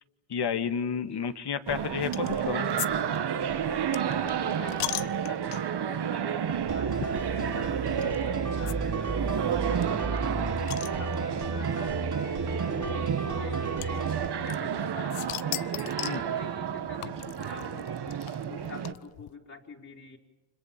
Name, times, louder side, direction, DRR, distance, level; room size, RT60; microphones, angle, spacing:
voice 1, 0.3-2.7 16.0-16.2, left 7 dB, 50° left, 10 dB, 1.9 m, -31 dB
sound 1, 1.7-18.9, right 8 dB, 50° right, 1.7 m, -31 dB
sound 2, 2.1-2.4 2.8-5.9 6.5-6.6 6.9-7.0 8.0-8.2 8.7-8.8 9.0-9.1 9.3-9.4 9.8-11.5 12.4-12.5 13.8-14.8 15.1-16.3 17.0-19.3, left 17 dB, 80° left, 0.8 m, -37 dB
voice 2, 3.6-10.6 10.9-17.9 18.4-20.2, left 3 dB, 35° left, -2 dB, 4.2 m, -46 dB
sound 3, 6.7-14.3, right 3 dB, 35° right, 3.1 m, -33 dB
30.0 x 25.5 x 7.4 m, 1.1 s
supercardioid pair, 60°, 50 cm